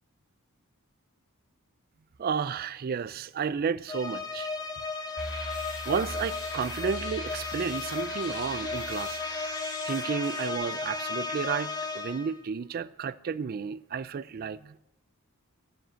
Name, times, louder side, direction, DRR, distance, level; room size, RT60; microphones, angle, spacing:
voice 1, 2.2-4.5 5.9-9.2 9.5-9.6 9.9-14.8, right 6 dB, 45° right, 0.4 m, -32 dB
sound 1, 3.9-12.4, left 3 dB, 20° left, 1.1 m, -35 dB
sound 2, 5.2-10.5, left 2 dB, 55° left, 3.3 m, -41 dB
14.0 x 7.6 x 7.5 m
head